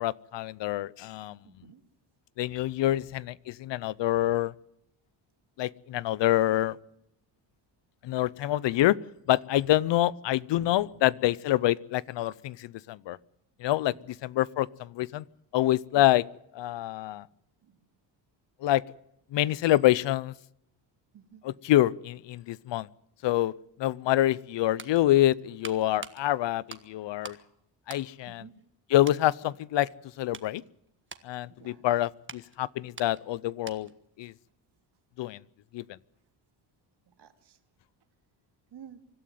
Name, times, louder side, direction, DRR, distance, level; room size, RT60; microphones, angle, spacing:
voice 1, 0.0-1.4 2.4-4.5 5.6-6.8 8.0-9.0 9.3-13.2 13.6-15.2 15.5-16.2 16.5-17.3 18.6-18.8 19.3-20.3 21.4-22.9 23.2-23.5 23.8-27.4 27.9-28.5 28.9-29.9 30.2-30.6 31.2-33.9 34.2-34.3 35.2-35.4 35.7-35.8, left 14 dB, 65° left, 22 dB, 0.7 m, -26 dB
voice 2, 1.4-1.8 10.6-10.7 15.9-16.0 21.1-21.4 28.3-28.5 31.6-31.8 37.2-37.6 38.7-39.0, right 9 dB, 55° right, 8 dB, 2.6 m, -50 dB
sound 1, 24.5-27.5 27.8-28.7 29.0-29.3 29.8-34.1 34.4-34.5, right 5 dB, 25° right, 1.5 m, -47 dB
25.0 x 13.0 x 9.3 m, 0.80 s
cardioid pair, 125°, 47 cm